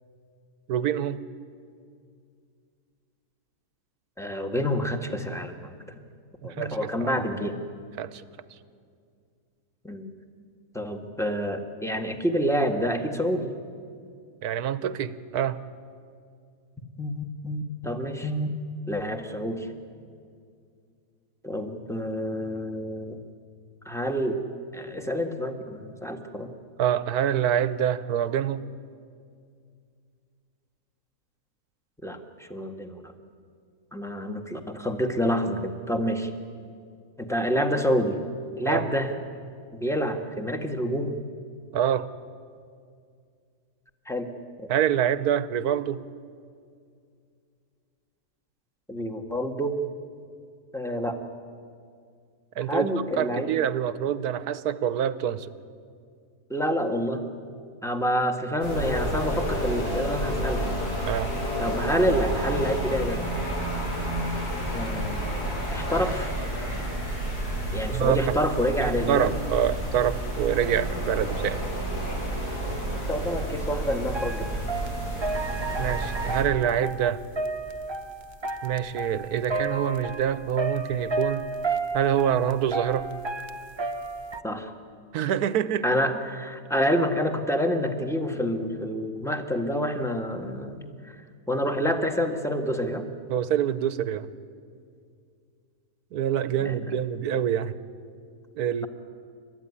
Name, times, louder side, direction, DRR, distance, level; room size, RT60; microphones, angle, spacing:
voice 1, 0.7-1.2 6.4-7.2 8.0-8.2 14.4-15.6 26.8-28.6 38.7-38.9 41.7-42.1 44.7-46.0 52.6-55.5 61.1-61.3 67.9-68.3 68.8-71.6 75.8-77.2 78.6-81.4 81.9-83.1 85.1-85.8 93.3-94.3 96.1-97.7 98.5-98.9, right 9 dB, 70° right, 15 dB, 1.3 m, -26 dB
voice 2, 4.2-5.8 6.4-7.5 9.8-10.1 10.7-13.5 17.0-18.5 18.9-19.7 21.4-23.2 23.8-24.4 24.7-26.5 32.0-33.1 33.9-36.3 37.2-38.2 38.6-39.1 39.7-41.2 44.0-44.3 44.6-44.7 48.9-49.8 50.7-51.2 52.7-53.5 56.5-57.2 57.8-60.8 61.6-63.2 64.7-66.3 67.7-69.3 73.1-74.5 84.4-84.7 85.8-91.1 91.5-93.1 96.6-96.7, equal, ahead, 5 dB, 1.4 m, -28 dB
sound 1, 58.6-76.4, right 1 dB, 65° left, 5.1 m, -30 dB
sound 2, 74.1-84.4, right 3 dB, 40° right, 0.4 m, -32 dB
29.5 x 13.5 x 9.8 m, 2.3 s
omnidirectional pair, 1.7 m